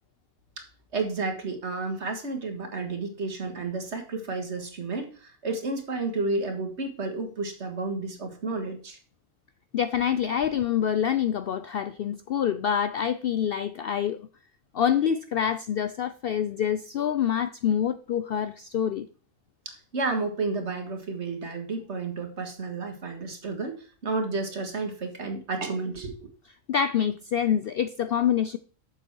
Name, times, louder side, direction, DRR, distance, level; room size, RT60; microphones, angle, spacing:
voice 1, 0.9-9.0 10.2-10.4 19.7-26.3, right 3 dB, 55° right, 2.0 m, -31 dB
voice 2, 9.7-14.2 14.7-19.1 26.7-28.6, left 9 dB, 65° left, 0.6 m, -26 dB
7.3 x 7.0 x 4.6 m
omnidirectional pair, 1.4 m